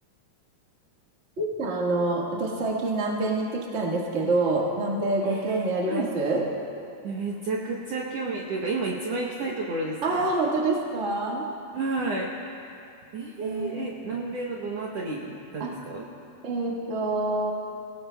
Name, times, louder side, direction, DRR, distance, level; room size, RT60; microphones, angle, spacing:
voice 1, 1.4-6.4 10.0-11.5 13.4-13.8 15.6-15.7 16.4-17.5, right 2 dB, 45° right, -3 dB, 0.9 m, -26 dB
voice 2, 5.2-6.1 7.0-10.3 11.7-12.3 13.1-16.1, right 3 dB, 70° right, -2 dB, 1.5 m, -31 dB
23.5 x 17.5 x 2.3 m, 2.6 s
omnidirectional pair, 4.1 m